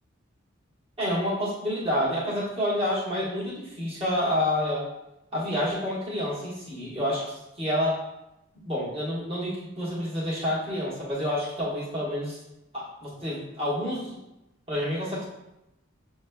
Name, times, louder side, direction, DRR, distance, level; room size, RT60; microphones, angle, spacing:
voice 1, 1.0-4.9 5.3-8.0 8.6-12.4 12.7-14.2 14.7-15.2, left 1 dB, 30° right, -8 dB, 1.4 m, -28 dB
6.7 x 3.1 x 2.2 m, 0.91 s
head